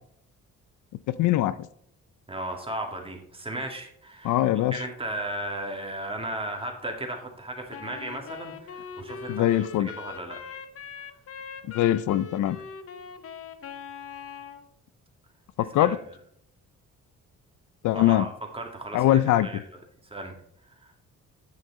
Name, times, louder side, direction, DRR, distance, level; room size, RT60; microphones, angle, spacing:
voice 1, 1.2-1.6 4.2-4.7 9.3-9.9 11.7-12.6 15.6-16.0 17.8-18.3 18.9-19.5, left 13 dB, 80° left, 16 dB, 0.5 m, -22 dB
voice 2, 2.3-4.4 4.7-9.5 9.8-10.4 15.8-15.9 17.9-19.8 20.0-20.3 20.8-20.9, right 1 dB, 20° right, 2 dB, 2.2 m, -35 dB
Wind instrument woodwind instrument, 7.7-14.7, left 6 dB, 50° left, 0.9 m, -41 dB
9.1 x 6.5 x 4.1 m, 0.69 s
cardioid pair, 90°, 30 cm